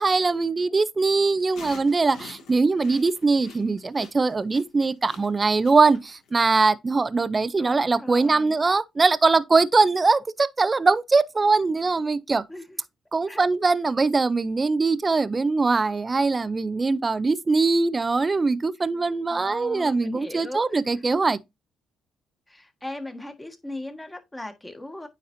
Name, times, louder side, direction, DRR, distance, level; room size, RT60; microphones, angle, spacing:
voice 1, 0.0-12.4 13.1-21.4, right 3 dB, 25° right, 0.5 m, -22 dB
sound 1, 1.2-6.3, left 5 dB, 80° left, 2.0 m, -46 dB
voice 2, 7.6-8.6 12.5-12.8 13.3-13.5 19.3-21.0 22.5-25.1, left 1 dB, 10° left, 1.5 m, -38 dB
9.3 x 4.0 x 2.7 m
cardioid pair, 90°, 0 cm